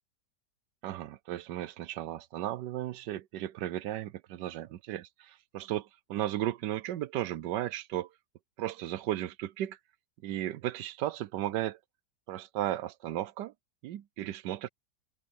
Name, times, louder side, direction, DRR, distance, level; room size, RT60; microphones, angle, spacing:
voice 1, 0.8-8.1 8.6-9.8 10.2-11.8 12.3-13.5 13.8-14.7, right 13 dB, 80° right, 1.3 m, -35 dB
omnidirectional pair, 1.8 m